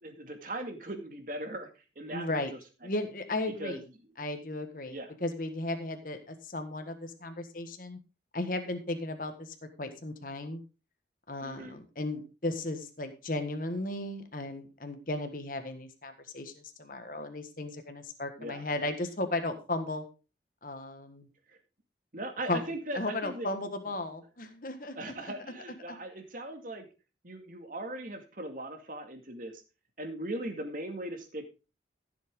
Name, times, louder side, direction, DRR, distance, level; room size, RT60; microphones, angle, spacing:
voice 1, 0.0-1.7 2.0-2.6 3.6-3.8 4.9-5.1 11.4-11.8 18.4-18.6 22.1-23.5 24.9-26.9 27.2-29.6 30.0-31.5, right 1 dB, 45° right, 5 dB, 2.2 m, -39 dB
voice 2, 2.1-2.5 2.8-3.8 4.2-8.0 8.3-10.6 11.3-20.0 20.6-21.3 22.5-22.6 22.9-25.1 25.9-26.0, left 2 dB, 50° left, 7 dB, 1.5 m, -35 dB
14.5 x 7.6 x 3.7 m, 0.31 s
head